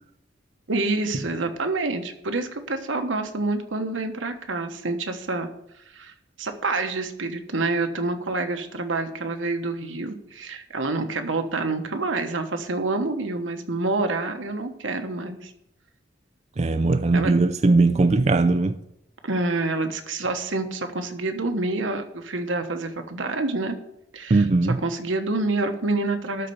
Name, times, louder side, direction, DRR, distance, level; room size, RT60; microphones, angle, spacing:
voice 1, 0.7-5.5 5.9-6.1 6.4-15.5 17.1-17.3 19.2-23.8 24.1-24.5 24.7-26.5, right 2 dB, 90° right, 1.2 m, -27 dB
voice 2, 16.6-18.8 24.3-24.8, right 3 dB, 35° right, 0.4 m, -19 dB
12.5 x 4.3 x 8.1 m
head